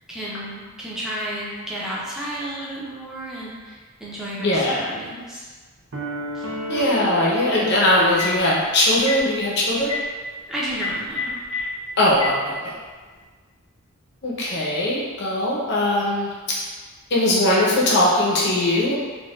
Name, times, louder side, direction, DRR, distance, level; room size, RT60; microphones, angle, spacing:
voice 1, 0.1-5.5 6.3-6.5 10.5-11.4, right 1 dB, ahead, -7 dB, 0.5 m, -32 dB
voice 2, 4.4-4.8 6.7-9.9 12.0-12.7 14.2-16.6 17.1-18.9, left 1 dB, 50° left, -5 dB, 0.7 m, -20 dB
sound 1, 5.9-9.2, left 1 dB, 55° right, 0.5 m, -32 dB
Telephone, 8.2-8.4 9.0-9.2 9.8-10.0 10.7-11.6 12.1-12.3, left 5 dB, 30° right, 1.0 m, -27 dB
4.3 x 2.3 x 2.3 m, 1.4 s
head